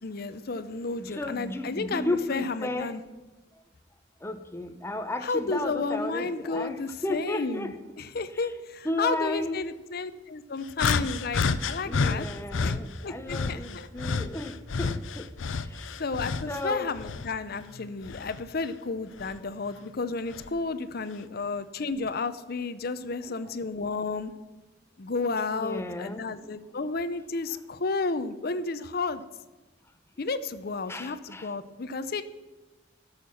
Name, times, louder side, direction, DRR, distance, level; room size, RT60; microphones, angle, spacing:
voice 1, 0.0-3.0 5.2-12.3 12.6-12.7 13.0-13.9 16.0-24.3 25.0-29.2 30.2-32.2, left 3 dB, 55° left, 13 dB, 0.7 m, -32 dB
voice 2, 1.0-2.9 4.2-7.8 8.8-9.6 11.8-15.3 16.5-16.9 25.6-26.2 30.9-31.5, left 1 dB, 15° left, 8 dB, 0.8 m, -33 dB
sound 1, 10.8-12.8 13.3-16.6 17.0-18.4 19.2-19.4 20.3-20.5, left 4 dB, 90° left, 0.6 m, -29 dB
13.0 x 6.6 x 7.0 m, 1.2 s
head